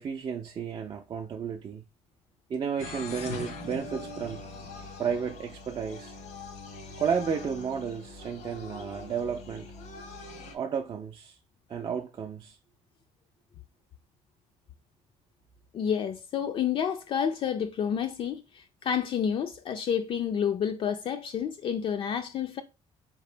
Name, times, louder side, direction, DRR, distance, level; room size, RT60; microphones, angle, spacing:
voice 1, 0.0-1.8 2.5-4.4 5.0-6.2 7.0-9.7 10.5-11.4 11.7-12.6, right 7 dB, 40° right, 0.4 m, -32 dB
sound 1, 2.8-10.5, left 3 dB, 85° left, 1.0 m, -42 dB
voice 2, 15.7-22.6, left 8 dB, 50° left, 0.4 m, -29 dB
4.3 x 2.9 x 3.3 m
cardioid pair, 125°, 12 cm